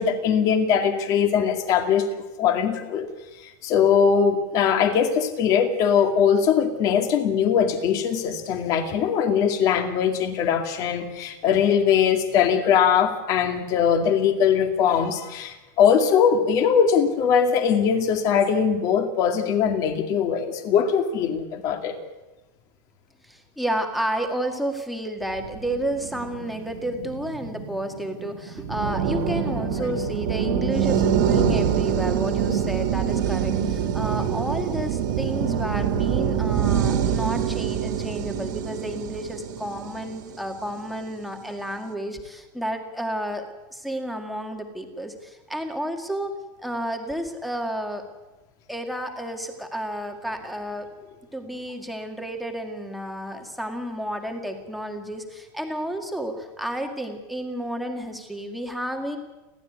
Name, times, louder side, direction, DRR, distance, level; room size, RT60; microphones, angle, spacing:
voice 1, 0.0-2.1 2.4-3.1 3.4-22.0, left 7 dB, 35° left, 7 dB, 2.3 m, -21 dB
voice 2, 23.2-43.4 43.7-46.3 46.6-48.0 48.7-50.9 51.3-59.2, right 1 dB, ahead, 3 dB, 2.0 m, -31 dB
sound 1, 25.4-40.8, right 8 dB, 65° right, 2.5 m, -25 dB
30.0 x 12.5 x 9.4 m, 1.1 s
supercardioid pair, 175°, 11 cm